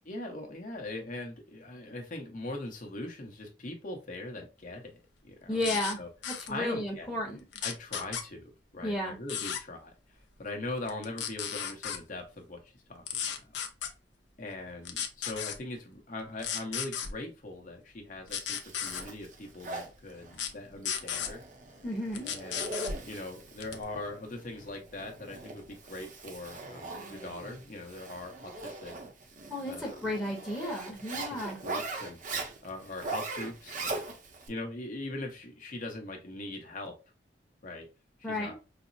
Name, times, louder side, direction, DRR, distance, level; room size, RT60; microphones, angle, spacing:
voice 1, 0.0-6.1 6.5-7.1 7.6-9.9 10.4-13.6 14.4-21.4 22.2-22.6 23.0-28.9 29.6-30.1 31.1-32.2 32.6-34.0 34.5-37.0 37.6-37.9 38.2-38.6, left 2 dB, 50° left, 3 dB, 0.9 m, -41 dB
voice 2, 5.5-6.0 6.3-7.4 8.8-9.2 21.8-22.3 29.5-31.6 38.2-38.6, left 1 dB, 10° left, -4 dB, 0.9 m, -33 dB
sound 1, 5.6-5.9 6.2-6.5 7.5-8.2 9.3-9.6 10.9-12.0 13.1-13.9 14.8-15.6 16.4-17.1 18.3-19.0 20.3-20.5 20.8-21.3 22.1-23.0 23.6-23.8, left 8 dB, 85° left, 0.6 m, -34 dB
Zipper (clothing), 18.3-34.5, right 3 dB, 45° right, 0.6 m, -41 dB
5.0 x 2.0 x 2.5 m, 0.29 s
head